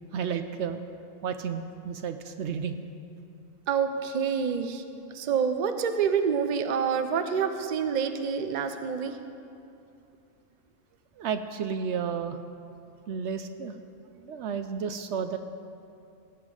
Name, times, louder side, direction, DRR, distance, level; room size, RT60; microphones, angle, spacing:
voice 1, 0.1-0.8 1.2-2.8 11.2-12.4 13.1-13.8 14.1-15.4, right 6 dB, 70° right, 9 dB, 0.8 m, -32 dB
voice 2, 3.7-4.8 5.1-9.2, right 6 dB, 45° right, 8 dB, 0.7 m, -27 dB
18.0 x 8.1 x 4.9 m, 2.6 s
omnidirectional pair, 1.3 m